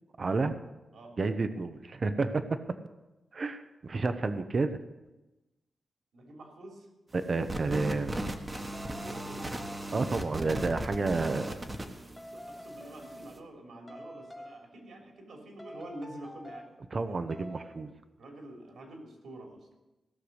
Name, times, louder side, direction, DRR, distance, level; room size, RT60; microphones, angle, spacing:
voice 1, 0.2-0.6 1.2-2.6 3.3-4.8 7.1-8.2 9.9-11.5 16.9-17.9, right 3 dB, 40° right, 10 dB, 0.7 m, -30 dB
voice 2, 6.1-6.9 9.0-9.6 11.1-11.6 12.0-16.7 17.1-17.2 18.2-19.7, right 1 dB, 80° right, 1 dB, 3.2 m, -47 dB
sound 1, 7.5-13.4, right 1 dB, 20° right, 1.2 m, -37 dB
sound 2, 8.7-10.0 10.4-11.2 12.2-13.6 13.9-14.8 15.6-16.8 17.3-17.9, equal, 10° left, 0.9 m, -47 dB
16.5 x 6.7 x 8.1 m, 1.1 s
wide cardioid pair, 160°, 0 cm